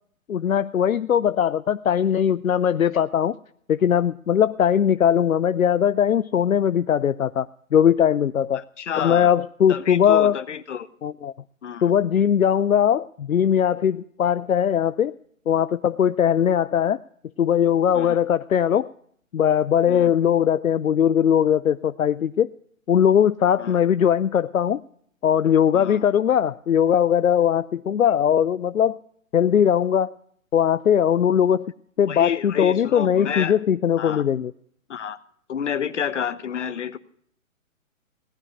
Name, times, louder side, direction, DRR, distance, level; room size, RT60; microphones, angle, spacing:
voice 1, 0.3-3.4 3.7-8.6 9.0-10.4 11.0-11.3 11.8-15.1 15.5-17.0 17.4-18.9 19.3-22.5 22.9-24.8 25.2-29.0 29.3-30.1 30.5-31.7 32.0-34.5, left 9 dB, 80° left, 15 dB, 0.6 m, -20 dB
voice 2, 8.5-9.3 9.7-10.9 11.6-11.9 17.9-18.2 19.9-20.1 23.6-23.8 25.7-26.0 32.1-33.5 34.0-34.2 34.9-35.2 35.5-37.0, left 8 dB, 60° left, 13 dB, 1.2 m, -29 dB
18.0 x 12.0 x 5.0 m, 0.63 s
figure-of-eight pair, 130°, 41 cm